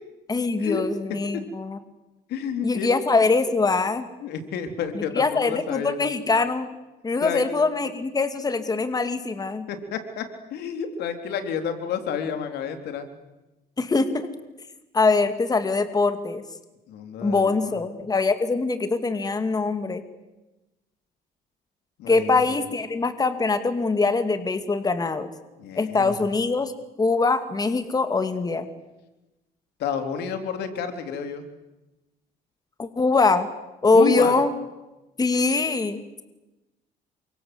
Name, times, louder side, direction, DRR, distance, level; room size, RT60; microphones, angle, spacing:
voice 1, 0.3-1.8 2.6-4.1 4.9-6.7 7.0-9.7 13.8-14.3 14.9-16.4 17.2-20.0 22.1-25.3 25.8-26.7 27.0-28.7 32.8-33.5 33.8-34.5 35.2-36.2, left 3 dB, 20° left, 9 dB, 2.4 m, -23 dB
voice 2, 2.3-2.9 4.2-6.0 7.2-7.5 9.7-10.3 10.5-13.1 16.9-17.8 22.0-22.5 25.6-26.1 29.8-31.4 33.9-34.3, left 7 dB, 75° left, 7 dB, 3.9 m, -30 dB
28.5 x 25.5 x 8.1 m, 1.0 s
cardioid pair, 110°, 17 cm